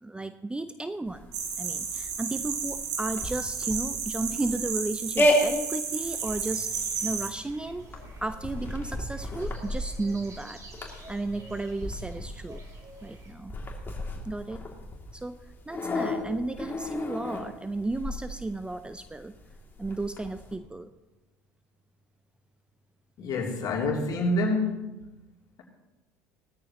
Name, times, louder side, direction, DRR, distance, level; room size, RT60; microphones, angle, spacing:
voice 1, 0.0-1.3 1.6-7.9 8.2-10.6 11.1-12.6 13.0-13.5 14.3-14.7 15.1-15.4 15.7-19.3 19.8-20.9, right 2 dB, 10° right, 11 dB, 0.5 m, -34 dB
sound 1, 1.1-20.6, left 1 dB, 25° left, 2.7 m, -33 dB
sound 2, 1.3-7.3, right 6 dB, 75° right, 2.1 m, -32 dB
sound 3, 6.1-13.3, right 2 dB, 40° right, 3.2 m, -49 dB
voice 2, 23.2-24.9, left 2 dB, 45° left, -1 dB, 3.1 m, -27 dB
17.5 x 13.5 x 3.0 m, 1.1 s
hypercardioid pair, 65°, 9 cm